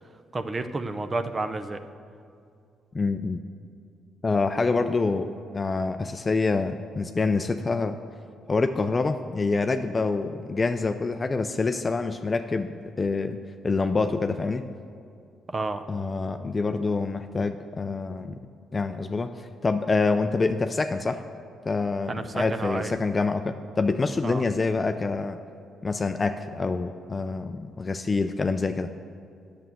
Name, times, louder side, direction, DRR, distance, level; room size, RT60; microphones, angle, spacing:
voice 1, 0.3-1.8 15.5-15.8 22.1-22.9 24.2-24.4, right 2 dB, 30° right, 9 dB, 0.6 m, -30 dB
voice 2, 2.9-3.4 4.2-8.0 8.5-13.4 13.6-14.7 15.9-18.3 18.7-21.2 21.7-25.4 25.8-28.9, left 3 dB, 30° left, 8 dB, 0.4 m, -26 dB
9.1 x 7.0 x 7.6 m, 2.4 s
cardioid pair, 90°, 0 cm